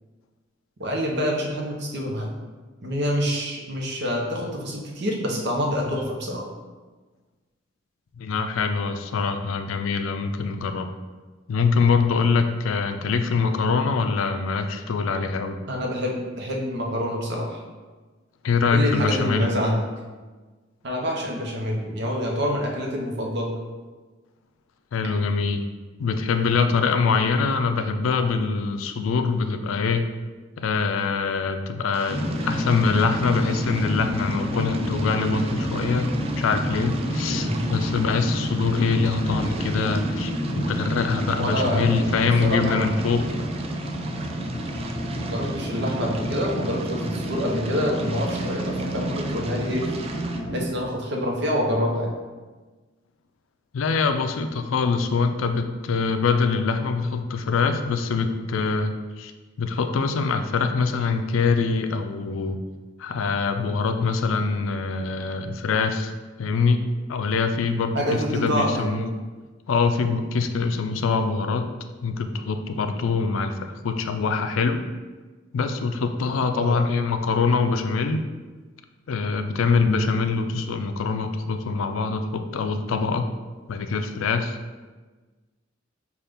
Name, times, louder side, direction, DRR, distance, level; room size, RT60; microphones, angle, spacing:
voice 1, 0.8-2.3 2.8-6.5 15.7-17.6 18.7-19.8 20.8-23.5 37.3-37.6 41.1-43.0 45.2-49.9 50.5-52.1 67.9-68.9 76.5-76.8, equal, 60° right, 0 dB, 0.8 m, -27 dB
voice 2, 8.2-10.9 11.5-15.6 18.4-19.5 24.9-25.6 26.0-30.1 30.6-36.1 36.4-43.2 53.7-59.3 59.6-62.6 63.0-66.1 66.4-66.8 67.1-69.1 69.7-71.7 72.0-74.8 75.5-78.2 79.1-83.2 83.7-84.6, left 4 dB, 90° left, 8 dB, 0.4 m, -24 dB
sound 1, 31.9-50.4, right 4 dB, 30° right, 0.3 m, -41 dB
sound 2, 32.1-50.6, equal, 15° left, 0.6 m, -29 dB
5.5 x 2.4 x 3.4 m, 1.3 s
head